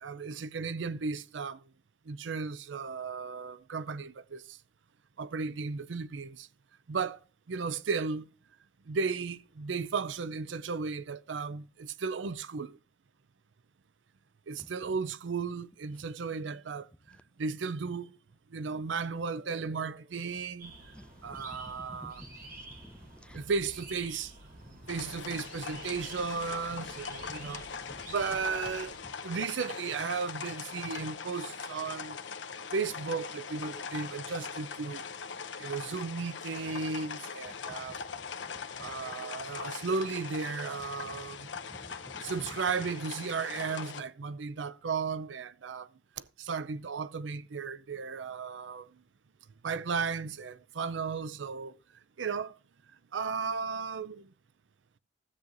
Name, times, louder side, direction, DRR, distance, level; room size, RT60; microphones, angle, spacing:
voice 1, 0.0-1.6 2.1-4.4 5.2-6.5 6.9-7.2 7.5-8.3 8.9-12.8 14.5-16.9 17.4-18.1 18.5-20.7 21.2-22.2 23.3-24.3 24.9-27.6 28.1-28.9 29.2-32.2 32.7-35.0 35.6-38.0 38.8-41.5 42.2-45.9 46.4-48.9 49.6-51.7 52.2-52.5 53.1-54.2, right 5 dB, 90° right, 0.5 m, -35 dB
sound 1, 20.6-29.0, right 2 dB, 50° right, 3.5 m, -50 dB
voice 2, 20.9-23.4 24.6-24.8 27.9-28.0 37.9-38.0 38.8-38.9 41.7-42.2, equal, 5° left, 0.5 m, -51 dB
sound 2, 24.9-44.0, left 6 dB, 85° left, 0.8 m, -41 dB
13.0 x 8.1 x 2.6 m
head